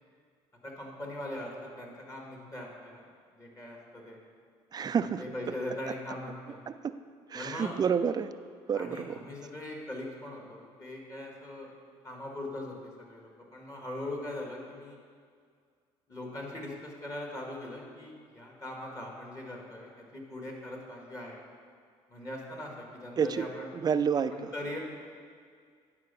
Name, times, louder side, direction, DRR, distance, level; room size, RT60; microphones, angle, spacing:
voice 1, 0.6-3.1 3.3-4.2 4.9-6.6 7.3-7.8 8.7-11.7 12.0-15.0 16.1-21.4 22.1-23.7 24.3-24.8, left 1 dB, 25° left, 0 dB, 1.8 m, -41 dB
voice 2, 4.7-5.2 6.7-6.9 7.3-8.3 8.7-9.2 23.2-23.5 23.8-24.5, right 7 dB, 30° right, 13 dB, 0.4 m, -29 dB
9.7 x 4.5 x 5.5 m, 2.1 s
supercardioid pair, 70°, 13 cm